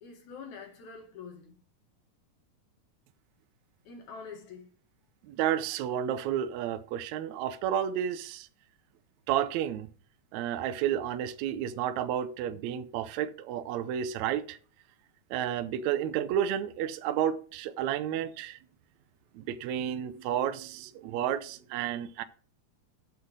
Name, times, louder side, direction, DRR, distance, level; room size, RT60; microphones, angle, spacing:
voice 1, 0.0-1.5 3.8-4.7, left 5 dB, 65° left, 2.8 m, -45 dB
voice 2, 5.2-8.5 9.3-9.9 10.3-14.6 15.3-18.6 19.3-22.2, right 10 dB, 75° right, 1.7 m, -31 dB
7.2 x 5.6 x 6.4 m
omnidirectional pair, 3.6 m